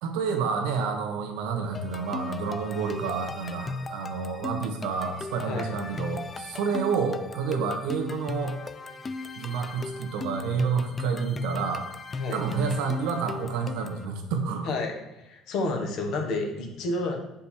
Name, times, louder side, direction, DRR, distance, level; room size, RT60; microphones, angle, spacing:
voice 1, 0.0-8.6 9.4-11.9 12.3-14.7, right 5 dB, 85° right, 3 dB, 1.2 m, -29 dB
sound 1, 1.7-14.0, left 3 dB, 25° left, 0.4 m, -37 dB
voice 2, 14.6-17.2, left 2 dB, 65° left, 2 dB, 1.4 m, -30 dB
7.2 x 5.3 x 4.4 m, 0.95 s
cardioid pair, 120°, 0 cm